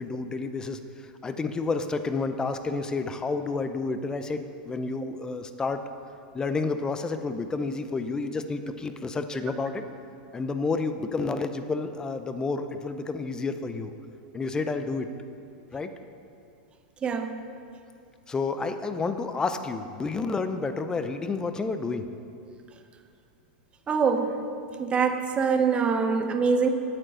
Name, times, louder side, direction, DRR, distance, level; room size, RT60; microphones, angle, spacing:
voice 1, 0.0-5.8 6.3-9.8 10.3-13.9 14.3-15.1 15.7-15.9 18.3-22.1, left 4 dB, 15° left, 9 dB, 0.6 m, -30 dB
voice 2, 23.9-24.4 24.8-26.7, right 5 dB, 25° right, 7 dB, 0.9 m, -24 dB
8.9 x 8.8 x 6.3 m, 2.4 s
hypercardioid pair, 125°, 5 cm